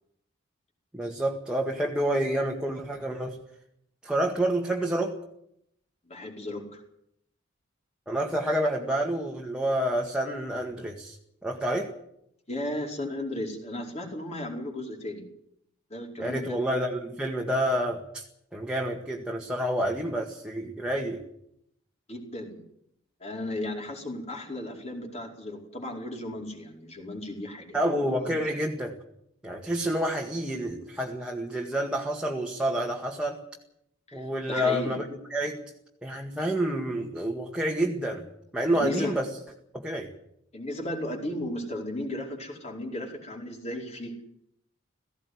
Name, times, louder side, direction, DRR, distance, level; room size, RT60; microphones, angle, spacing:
voice 1, 0.9-3.4 4.0-5.2 8.1-11.2 11.4-11.9 16.2-18.2 18.5-21.2 27.7-29.0 29.4-33.4 34.1-35.6 36.0-38.3 38.5-39.3 39.7-40.1, right 1 dB, 5° right, -1 dB, 1.9 m, -28 dB
voice 2, 6.0-6.8 12.5-15.2 15.9-16.6 22.1-22.6 23.2-28.4 34.1-34.9 38.7-39.1 40.5-44.1, left 1 dB, 35° left, 1 dB, 4.9 m, -35 dB
17.5 x 16.0 x 9.5 m, 0.75 s
head